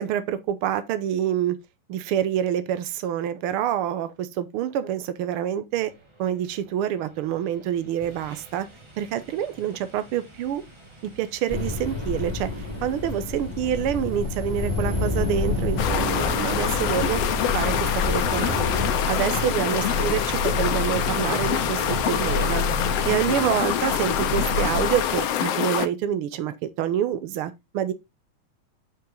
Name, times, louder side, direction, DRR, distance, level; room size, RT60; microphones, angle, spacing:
voice 1, 0.0-1.6 1.9-5.9 6.2-8.7 9.0-10.6 11.2-17.2 17.5-18.6 19.1-22.6 23.0-27.9, right 10 dB, 85° right, 1.2 m, -27 dB
sound 1, 7.5-7.6 8.0-25.3, left 3 dB, 15° right, 1.1 m, -33 dB
sound 2, 11.5-18.9, left 3 dB, 15° left, 2.3 m, -29 dB
sound 3, 15.8-25.9, left 10 dB, 70° left, 1.6 m, -26 dB
8.8 x 5.8 x 3.7 m
omnidirectional pair, 3.5 m